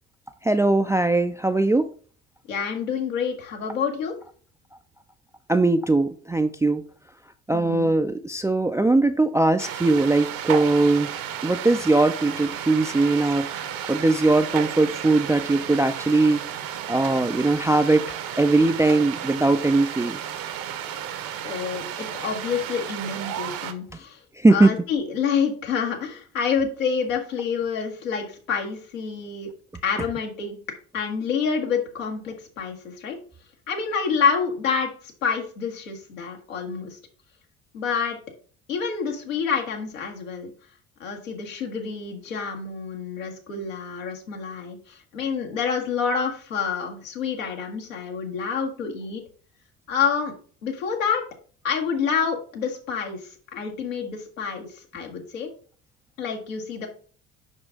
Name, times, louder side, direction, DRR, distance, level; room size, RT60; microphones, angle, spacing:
voice 1, 0.4-1.9 5.5-6.8 7.5-11.1 11.4-16.4 16.9-20.2 24.4-24.7, right 2 dB, 5° right, 7 dB, 0.4 m, -20 dB
voice 2, 2.5-4.1 7.5-7.9 21.4-24.2 24.5-29.5 29.8-30.6 30.9-33.2 33.7-37.0 37.7-38.2 38.7-40.5 41.0-49.2 49.9-50.3 50.6-51.2 51.6-55.5 56.2-56.9, left 6 dB, 80° left, 1 dB, 1.5 m, -28 dB
sound 1, 9.6-23.7, right 10 dB, 55° right, 1.0 m, -33 dB
5.8 x 5.5 x 3.6 m, 0.42 s
figure-of-eight pair, 55°, 39 cm